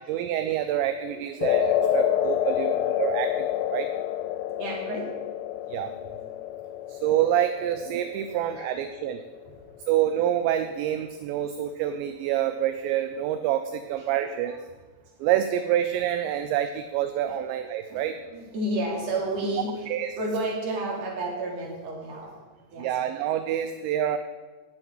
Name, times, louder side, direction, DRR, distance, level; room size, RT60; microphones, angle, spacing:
voice 1, 0.0-3.9 5.7-5.9 6.9-9.2 9.9-14.6 15.2-18.1 19.9-20.1 22.8-24.2, right 11 dB, 80° right, 9 dB, 2.6 m, -27 dB
voice 2, 1.1-1.4 1.8-2.8 4.3-5.1 5.5-6.2 8.3-8.7 9.3-9.5 13.8-14.1 14.4-14.6 15.0-15.1 17.3-17.4 17.9-19.9 20.2-22.3 22.7-22.9, right 1 dB, 40° right, -3 dB, 3.4 m, -33 dB
sound 1, 1.4-9.8, left 11 dB, 90° left, 3.1 m, -28 dB
18.5 x 7.7 x 4.6 m, 1.3 s
omnidirectional pair, 5.6 m